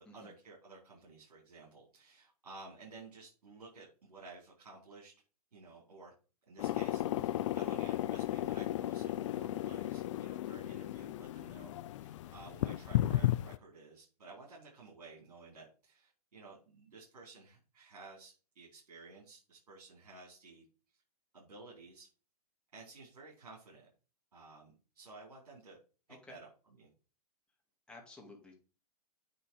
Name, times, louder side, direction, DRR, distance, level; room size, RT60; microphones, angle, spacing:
voice 1, 0.0-5.1 5.5-6.1 6.5-20.6 21.3-22.1 22.7-23.9 24.3-25.8 26.3-26.5 26.8-26.9, right 3 dB, 75° right, -6 dB, 4.6 m, -54 dB
sound 1, 6.6-13.6, left 13 dB, 50° left, 0.5 m, -34 dB
voice 2, 27.9-28.5, left 2 dB, 5° left, -1 dB, 2.0 m, -53 dB
9.3 x 4.2 x 4.7 m, 0.34 s
hypercardioid pair, 115°, 20 cm